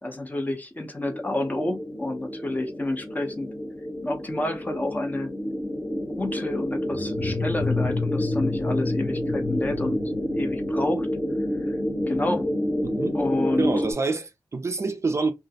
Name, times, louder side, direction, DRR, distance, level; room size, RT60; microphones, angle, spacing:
voice 1, 0.0-3.5 4.0-5.3 6.2-10.0 10.3-11.1 11.7-11.8 12.1-12.5 13.1-13.7, left 1 dB, 20° left, 0.5 m, -29 dB
sound 1, 1.1-13.9, left 1 dB, 55° left, 1.1 m, -29 dB
sound 2, 6.9-11.0, left 4 dB, 85° left, 1.1 m, -30 dB
voice 2, 12.8-13.2 13.6-15.3, right 3 dB, 35° right, 0.4 m, -27 dB
2.3 x 2.0 x 2.6 m
wide cardioid pair, 115°, 8 cm